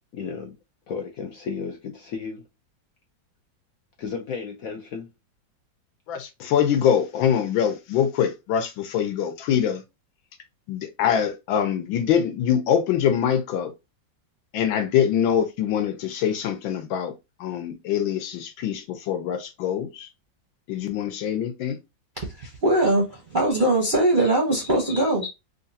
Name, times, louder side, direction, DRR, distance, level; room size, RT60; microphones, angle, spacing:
voice 1, 0.1-0.5 0.9-2.4 4.0-5.1, left 5 dB, 70° left, 0.8 m, -33 dB
voice 2, 6.1-9.8 10.7-13.7 14.5-17.1 17.4-20.1 20.7-21.8, left 9 dB, 85° left, 1.5 m, -24 dB
voice 3, 22.2-25.3, right 1 dB, 45° right, 0.6 m, -21 dB
3.6 x 2.5 x 2.6 m
omnidirectional pair, 2.1 m